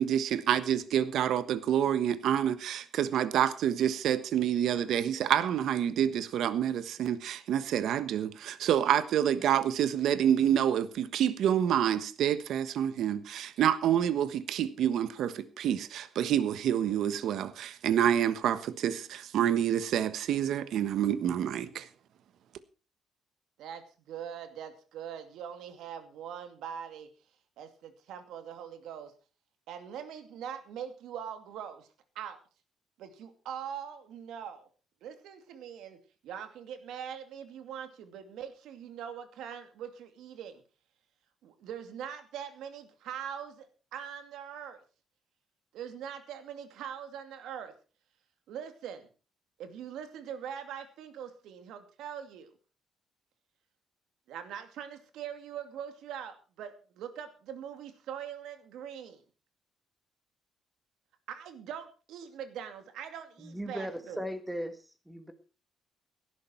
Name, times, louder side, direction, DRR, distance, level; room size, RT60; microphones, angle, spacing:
voice 1, 0.0-21.9, right 10 dB, 70° right, 1.2 m, -28 dB
voice 2, 23.6-27.1 27.6-29.1 29.7-31.9 32.1-32.4 33.0-34.7 35.0-36.0 36.2-40.6 41.4-43.7 43.9-44.8 45.7-47.7 48.5-49.1 49.6-52.5 54.3-59.2 61.3-64.3, right 8 dB, 85° right, 2.5 m, -42 dB
voice 3, 63.4-64.8 65.1-65.3, equal, 5° right, 1.7 m, -37 dB
17.0 x 11.5 x 4.5 m
cardioid pair, 150°, 0 cm